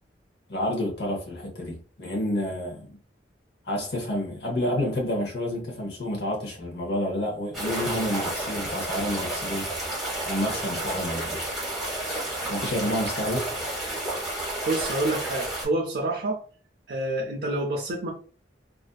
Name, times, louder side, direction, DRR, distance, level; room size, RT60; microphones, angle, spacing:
voice 1, 0.5-3.0 3.7-9.7 10.2-11.4 12.5-13.4, left 1 dB, 65° left, 0.7 m, -29 dB
sound 1, 7.5-15.7, right 1 dB, ahead, 0.9 m, -31 dB
voice 2, 14.7-16.4 16.9-18.1, right 2 dB, 60° right, 0.4 m, -27 dB
2.5 x 2.4 x 2.2 m
head